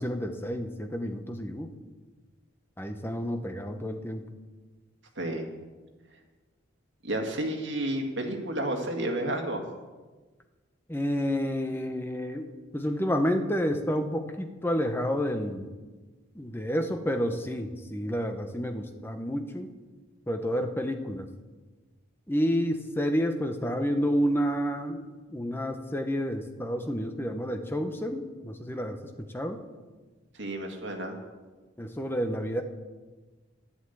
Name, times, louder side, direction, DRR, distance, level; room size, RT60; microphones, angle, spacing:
voice 1, 0.0-1.7 2.8-4.3 10.9-15.7 16.3-19.7 20.3-21.3 22.3-29.0 29.3-29.6 31.8-32.6, equal, 10° left, 6 dB, 0.9 m, -30 dB
voice 2, 5.2-5.5 7.0-9.6 30.3-31.2, right 1 dB, 60° right, 3 dB, 1.9 m, -31 dB
11.0 x 8.0 x 8.2 m, 1.3 s
head